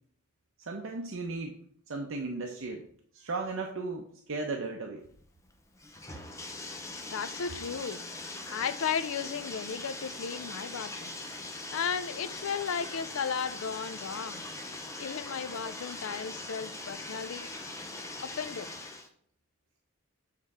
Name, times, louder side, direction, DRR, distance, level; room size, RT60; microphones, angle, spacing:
voice 1, 0.6-1.6 1.9-2.8 3.1-5.0, right 3 dB, 70° right, 2 dB, 0.7 m, -36 dB
Bathtub (filling or washing), 5.0-19.1, left 2 dB, 15° left, 0.6 m, -41 dB
voice 2, 7.1-8.0 8.5-11.1 11.7-14.4 15.0-17.5 18.2-18.7, left 6 dB, 70° left, 12 dB, 0.5 m, -35 dB
7.3 x 3.6 x 4.2 m, 0.63 s
head